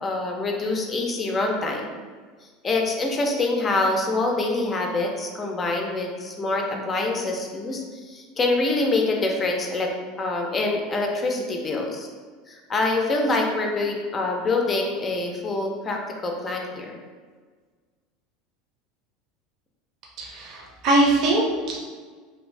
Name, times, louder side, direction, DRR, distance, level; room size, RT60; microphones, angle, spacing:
voice 1, 0.0-2.0 2.6-9.9 10.2-12.1 12.5-17.0, left 2 dB, 25° left, 1 dB, 0.5 m, -25 dB
voice 2, 20.2-21.8, right 2 dB, 50° right, -2 dB, 0.7 m, -22 dB
2.7 x 2.5 x 3.2 m, 1.5 s
supercardioid pair, 120°, 0 cm